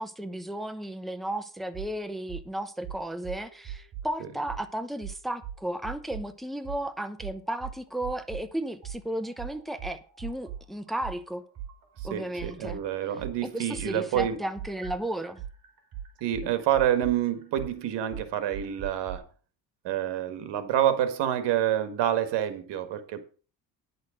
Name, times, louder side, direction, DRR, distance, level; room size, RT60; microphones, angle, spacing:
voice 1, 0.0-11.4 12.0-12.8 13.5-15.4, right 1 dB, ahead, 0.9 m, -34 dB
sound 1, 1.7-1.9 2.3-2.5 2.8-4.1 4.5-4.6 5.0-6.3 6.6-6.8 7.2-8.5 8.8-12.8 13.2-19.2, right 10 dB, 60° right, 3.3 m, -40 dB
voice 2, 12.1-14.4 16.2-19.3 19.8-23.3, right 11 dB, 80° right, 1.7 m, -27 dB
10.5 x 6.5 x 6.3 m
cardioid pair, 115°, 41 cm